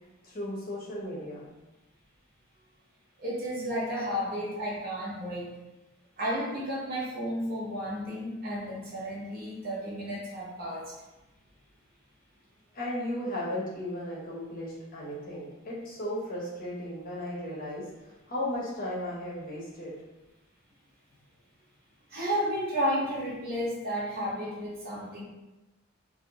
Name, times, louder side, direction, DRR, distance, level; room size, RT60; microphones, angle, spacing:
voice 1, 0.2-1.5 12.7-19.9, left 1 dB, 40° left, -5 dB, 0.7 m, -35 dB
voice 2, 3.2-5.5 6.2-10.9 22.1-25.2, equal, 45° right, -6 dB, 0.8 m, -32 dB
2.5 x 2.0 x 2.8 m, 1.0 s
head